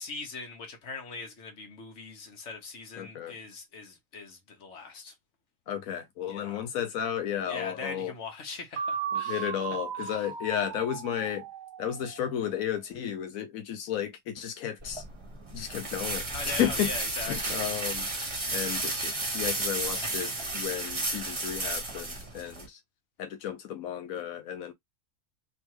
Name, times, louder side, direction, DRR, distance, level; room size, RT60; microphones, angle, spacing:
voice 1, 0.0-5.1 6.3-6.6 7.5-9.5 10.0-10.2 16.3-17.7, left 4 dB, 60° left, 1.5 m, -41 dB
voice 2, 3.0-3.4 5.7-8.1 9.1-11.4 11.8-15.0 15.5-16.9 17.2-18.1 18.5-22.8 23.2-24.7, left 10 dB, 90° left, 1.1 m, -33 dB
sound 1, 8.8-12.6, right 7 dB, 55° right, 0.5 m, -36 dB
sound 2, 14.8-22.7, right 2 dB, 25° right, 1.1 m, -33 dB
3.5 x 3.1 x 3.0 m
omnidirectional pair, 1.4 m